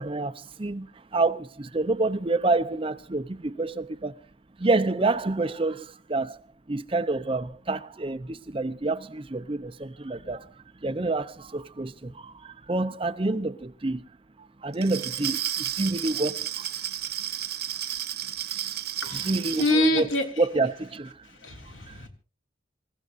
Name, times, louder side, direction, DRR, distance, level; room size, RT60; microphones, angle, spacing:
voice 1, 0.0-4.1 4.6-6.4 6.7-10.5 10.8-14.1 14.6-16.7 19.1-20.1 20.4-21.3 21.9-22.0, right 2 dB, 30° right, 0.6 m, -28 dB
Glass, 14.7-19.8, right 11 dB, 55° right, 1.1 m, -32 dB
voice 2, 19.6-20.2 21.4-22.1, left 1 dB, 90° left, 3.4 m, -25 dB
27.0 x 15.5 x 2.6 m
head